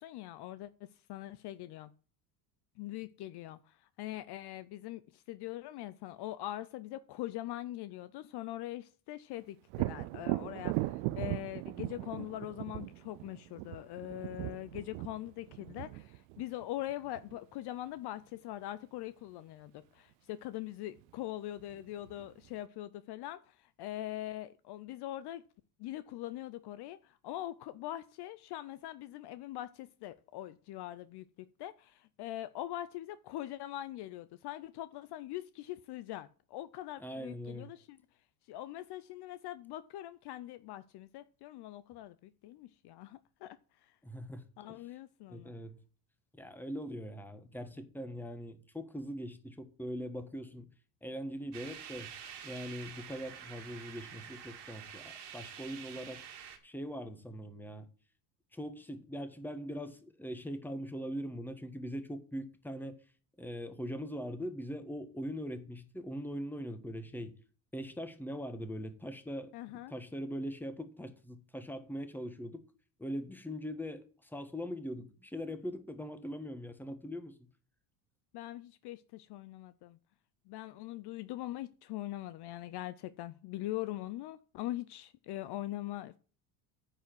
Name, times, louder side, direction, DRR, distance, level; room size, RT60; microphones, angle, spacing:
voice 1, 0.0-1.9 2.8-25.4 25.8-31.3 31.6-38.0 38.5-43.6 44.6-45.5 69.5-69.9 78.3-80.0 80.5-86.2, left 14 dB, 55° left, 0.6 m, -42 dB
Thunder, 9.7-17.4 21.0-21.1 21.6-22.5, right 20 dB, 75° right, 0.6 m, -38 dB
voice 2, 37.0-37.7 44.0-44.7 45.3-45.8 46.3-50.7 51.0-52.1 52.4-56.2 56.6-57.9 58.5-63.0 63.4-67.3 67.7-69.5 69.9-72.6 73.0-77.4, equal, 5° left, 1.4 m, -41 dB
sound 1, 51.5-56.6, right 8 dB, 55° right, 2.2 m, -48 dB
9.9 x 4.8 x 7.8 m
supercardioid pair, 85°, 49 cm